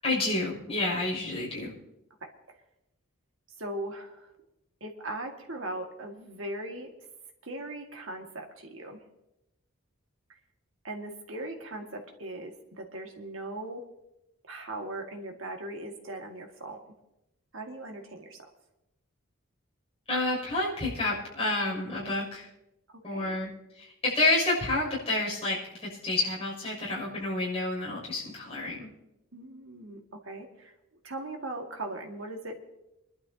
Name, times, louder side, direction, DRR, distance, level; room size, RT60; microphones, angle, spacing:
voice 1, 0.0-1.7 20.1-22.5 23.0-23.5 23.8-28.9, left 2 dB, 30° left, -4 dB, 6.6 m, -29 dB
voice 2, 3.6-4.3 4.8-6.9 7.4-9.0 10.8-13.8 14.5-16.9 17.5-18.4 22.9-23.4 29.3-30.7 31.0-32.6, right 1 dB, 70° right, 3 dB, 2.0 m, -39 dB
28.0 x 12.0 x 2.9 m, 0.91 s
head